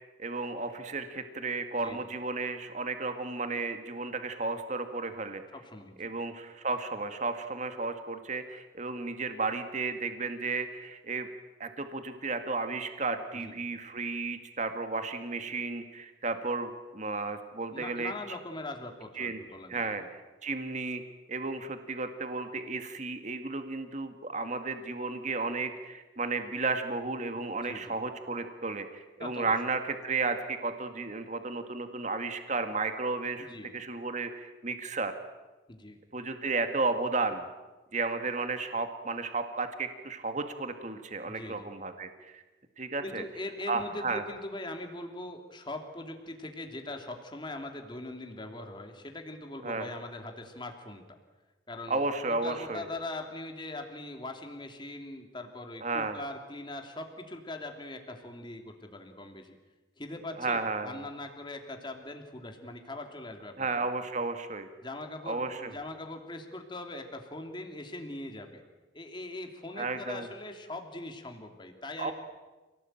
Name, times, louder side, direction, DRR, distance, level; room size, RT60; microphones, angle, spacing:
voice 1, 0.2-5.4 6.0-11.3 11.6-18.1 19.2-19.4 19.7-21.0 21.3-35.1 36.1-37.5 37.9-42.4 42.8-43.2 43.7-44.2 49.6-49.9 51.9-52.9 55.8-56.2 60.4-61.0 63.6-64.7 65.3-65.7 69.8-70.3 72.0-72.1, right 3 dB, 40° right, 7 dB, 2.0 m, -33 dB
voice 2, 5.5-6.1 13.4-13.6 17.7-20.1 27.6-27.9 29.2-29.5 33.4-33.7 35.7-36.0 41.2-41.7 43.0-51.0 51.7-52.0 52.3-59.6 60.0-63.8 64.8-68.6 68.9-72.1, left 2 dB, 25° left, 4 dB, 2.9 m, -41 dB
28.0 x 18.5 x 9.1 m, 1.2 s
head